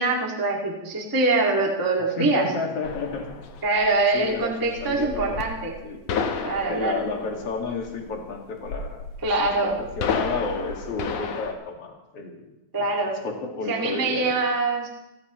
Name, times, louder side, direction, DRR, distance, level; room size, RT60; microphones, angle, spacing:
voice 1, 0.0-2.5 3.6-5.7 6.4-7.0 9.2-9.8 12.7-13.2 13.7-14.9, right 3 dB, 25° right, -1 dB, 0.4 m, -24 dB
voice 2, 2.2-3.4 4.1-5.4 5.8-6.0 6.7-9.0 9.4-12.4 12.8-14.4, left 3 dB, 45° left, 1 dB, 2.5 m, -31 dB
sound 1, 2.8-11.5, left 5 dB, 80° left, 1.5 m, -32 dB
28.5 x 14.5 x 3.2 m, 0.95 s
omnidirectional pair, 5.0 m